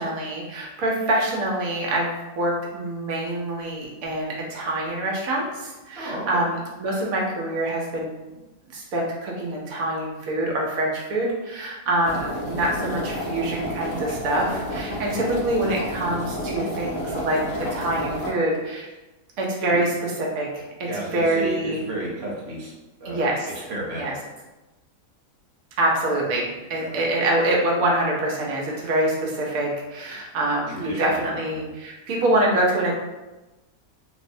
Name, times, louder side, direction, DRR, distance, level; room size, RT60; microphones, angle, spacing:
voice 1, 0.0-8.1 8.7-18.9 19.4-20.6 20.9-21.8 23.0-23.5 24.0-24.1 25.8-32.9, right 1 dB, 90° right, -2 dB, 1.1 m, -25 dB
voice 2, 6.0-6.4 14.6-14.7 19.7-19.8 20.8-22.7 23.0-24.2 26.7-27.0 30.7-31.7, right 1 dB, 55° right, -4 dB, 0.9 m, -33 dB
sound 1, 12.0-18.3, equal, 55° left, 1.0 m, -30 dB
3.2 x 2.0 x 2.6 m, 1.1 s
omnidirectional pair, 1.5 m